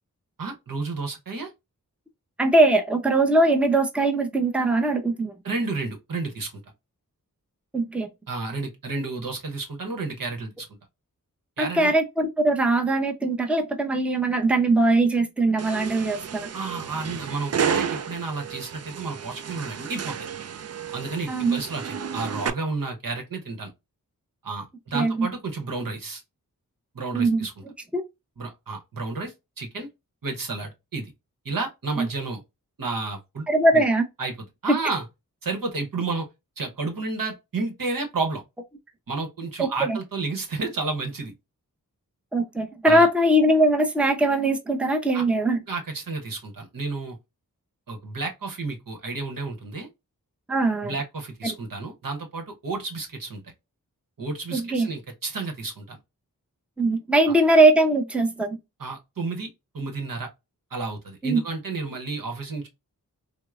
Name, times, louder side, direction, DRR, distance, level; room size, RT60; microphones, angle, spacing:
voice 1, 0.4-1.5 5.4-6.5 8.3-10.7 11.6-11.9 16.5-20.2 20.9-23.7 24.4-26.2 26.9-27.5 28.4-29.9 30.2-31.1 31.4-32.4 32.8-33.5 33.7-33.8 34.2-34.3 34.6-35.1 35.4-36.3 36.6-38.4 39.1-41.3 42.8-43.1 45.1-45.2 45.7-47.2 47.9-49.9 50.8-53.5 54.2-56.0 58.8-59.5 59.7-60.3 60.7-62.7, right 3 dB, 70° right, 1.0 m, -31 dB
voice 2, 2.4-5.3 7.7-8.1 11.6-16.5 21.3-21.6 24.9-25.3 27.1-27.5 27.9-28.0 32.0-32.1 33.5-34.1 34.7-34.8 39.6-40.0 42.3-45.6 50.5-50.9 51.4-51.5 54.5-54.9 56.8-58.6 61.2-61.4, right 2 dB, 5° right, 0.6 m, -21 dB
sound 1, 15.6-22.5, right 7 dB, 45° right, 0.4 m, -32 dB
4.4 x 2.0 x 2.4 m
cardioid pair, 50°, 35 cm